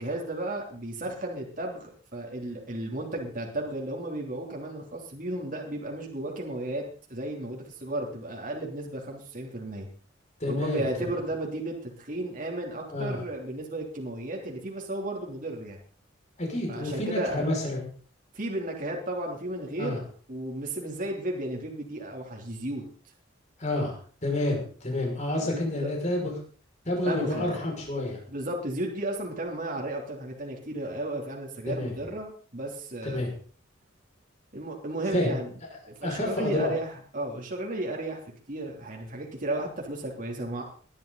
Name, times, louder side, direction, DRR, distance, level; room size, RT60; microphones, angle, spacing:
voice 1, 0.0-9.9 10.5-15.8 16.7-17.5 18.3-20.0 20.3-22.8 25.4-25.9 27.0-27.6 28.3-33.2 34.5-35.5 35.9-38.2 38.5-40.6, right 1 dB, 40° right, -1 dB, 3.2 m, -34 dB
voice 2, 10.4-10.9 12.9-13.2 16.4-17.9 19.8-20.0 23.6-26.3 26.8-28.2 31.7-31.9 33.1-33.3 35.1-35.3 36.0-36.7, left 1 dB, 35° left, 0 dB, 5.9 m, -29 dB
20.0 x 12.0 x 4.0 m, 0.43 s
head